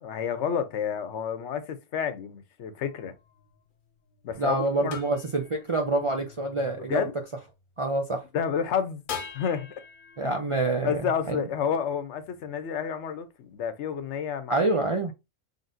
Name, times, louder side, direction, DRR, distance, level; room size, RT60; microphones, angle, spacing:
voice 1, 0.0-3.1 4.2-5.0 6.8-7.2 8.3-9.0 9.3-9.7 10.2-10.3 10.8-14.6, left 7 dB, 75° left, 1.0 m, -30 dB
sound 1, 2.8-8.1 9.1-12.4, left 6 dB, 50° left, 0.7 m, -45 dB
voice 2, 4.4-7.1 7.8-8.2 10.2-11.0 11.3-11.4 14.5-15.1, right 2 dB, 50° right, 0.4 m, -26 dB
3.9 x 3.5 x 2.5 m
omnidirectional pair, 1.2 m